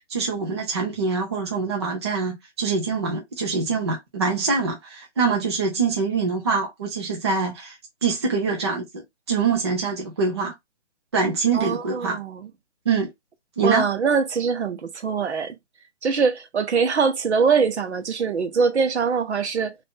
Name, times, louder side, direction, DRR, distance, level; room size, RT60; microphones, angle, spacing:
voice 1, 0.1-7.7 8.0-10.5 11.1-12.2 12.9-13.1 13.6-13.9, right 4 dB, 25° right, 0.5 m, -24 dB
voice 2, 11.5-12.5 13.6-15.6 16.0-19.8, right 5 dB, 65° right, 0.9 m, -23 dB
2.6 x 2.5 x 3.6 m
hypercardioid pair, 165°, 36 cm